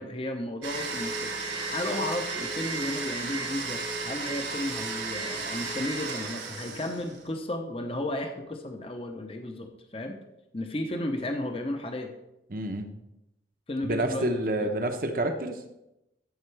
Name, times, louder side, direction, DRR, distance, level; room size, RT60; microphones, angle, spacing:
voice 1, 0.0-10.2 10.5-12.1 13.7-14.7, left 1 dB, 30° left, 5 dB, 0.8 m, -34 dB
Domestic sounds home sounds, 0.6-7.3, right 3 dB, 85° right, 3.1 m, -34 dB
voice 2, 12.5-12.9 13.8-15.6, right 1 dB, 50° right, 5 dB, 0.9 m, -28 dB
12.5 x 7.3 x 3.3 m, 0.89 s
head